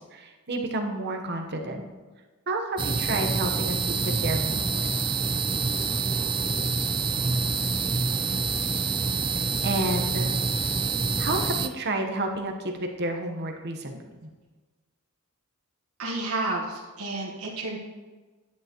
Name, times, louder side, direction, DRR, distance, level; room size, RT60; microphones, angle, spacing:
voice 1, 0.1-1.8 2.5-4.9 9.3-10.3 11.2-14.3, right 2 dB, 50° right, 3 dB, 1.1 m, -31 dB
sound 1, 2.8-11.7, right 4 dB, 25° right, 0.4 m, -26 dB
voice 2, 16.0-17.8, right 2 dB, 80° right, -4 dB, 1.5 m, -31 dB
10.5 x 9.2 x 3.0 m, 1.3 s
head